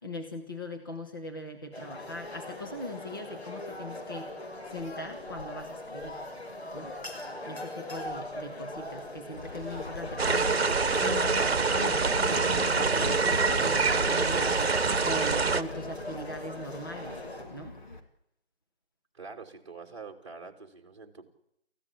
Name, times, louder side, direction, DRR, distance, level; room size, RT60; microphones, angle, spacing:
voice 1, 0.0-4.3 4.6-6.2 6.7-6.9 7.4-10.7 10.9-14.6 15.0-17.2 17.5-17.8, left 1 dB, 20° left, 3 dB, 1.3 m, -40 dB
sound 1, 1.7-17.4, left 1 dB, 75° left, 6.6 m, -40 dB
Livestock farm animals working animals, 9.3-18.0, left 1 dB, 45° left, 2.6 m, -39 dB
sound 2, 10.2-15.6, right 4 dB, 65° right, 1.1 m, -25 dB
voice 2, 19.1-21.3, right 4 dB, 25° right, 2 dB, 2.6 m, -45 dB
28.0 x 15.5 x 8.6 m, 0.80 s
figure-of-eight pair, 175°, 33 cm